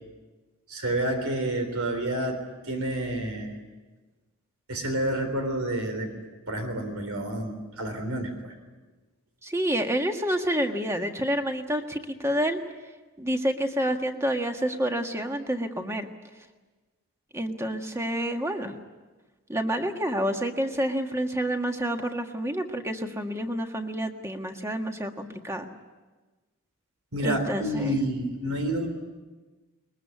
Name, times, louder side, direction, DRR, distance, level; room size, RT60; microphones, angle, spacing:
voice 1, 0.7-2.4 2.7-3.5 4.7-6.1 6.5-8.5 27.1-28.9, right 1 dB, 85° right, 6 dB, 3.5 m, -29 dB
voice 2, 9.4-12.6 13.2-16.1 17.3-18.8 19.5-25.7 27.2-28.0, equal, 15° right, 4 dB, 1.7 m, -28 dB
21.5 x 21.5 x 9.5 m, 1.3 s
head